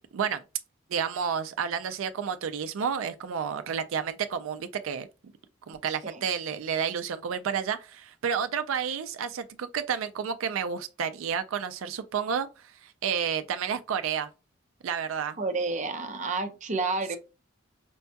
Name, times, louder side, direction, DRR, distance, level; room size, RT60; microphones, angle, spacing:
voice 1, 0.9-5.1 5.7-12.5 12.8-14.3 14.8-15.4, right 7 dB, 85° right, 0.4 m, -30 dB
voice 2, 15.4-17.2, right 3 dB, 35° right, 0.6 m, -30 dB
5.2 x 2.3 x 2.7 m
head